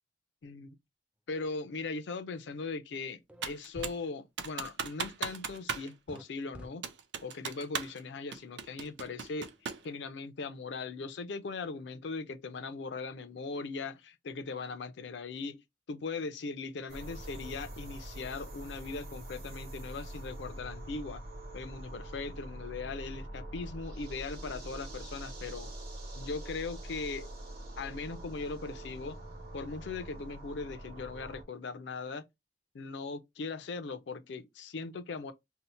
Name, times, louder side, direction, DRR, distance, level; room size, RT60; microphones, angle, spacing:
voice 1, 0.4-0.8 1.3-6.9 7.2-9.5 9.8-15.6 15.9-21.2 21.5-25.7 26.2-27.3 27.8-29.2 29.5-32.2 32.7-35.3, left 4 dB, 80° left, 0.5 m, -39 dB
sound 1, 3.3-3.4 3.7-4.0 6.1-6.2 6.5-6.7, equal, 5° right, 0.3 m, -46 dB
Computer keyboard, 3.4-4.0 4.4-5.9 6.1-6.2 6.8-8.0 8.3-9.9, right 6 dB, 75° right, 0.5 m, -37 dB
sound 2, 16.9-31.4, right 1 dB, 55° right, 1.0 m, -44 dB
2.8 x 2.0 x 4.0 m
head